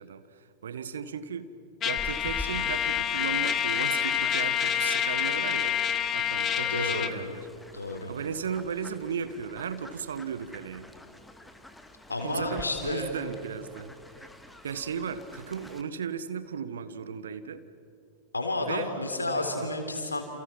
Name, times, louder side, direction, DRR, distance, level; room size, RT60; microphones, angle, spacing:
voice 1, 0.0-1.5 1.8-5.8 6.1-7.5 8.1-10.9 12.2-13.9 14.6-17.6 18.6-18.9 19.6-19.7, right 7 dB, 65° right, 13 dB, 1.3 m, -36 dB
Trumpet, 1.8-7.2, left 9 dB, 30° left, 1.3 m, -27 dB
Fowl, 2.0-15.8, left 2 dB, 5° left, 1.8 m, -46 dB
voice 2, 6.5-7.1 7.7-8.1 12.1-13.1 18.3-20.2, left 2 dB, 80° left, 5 dB, 3.9 m, -31 dB
29.5 x 29.0 x 6.1 m, 2.6 s
figure-of-eight pair, 90°, 0 cm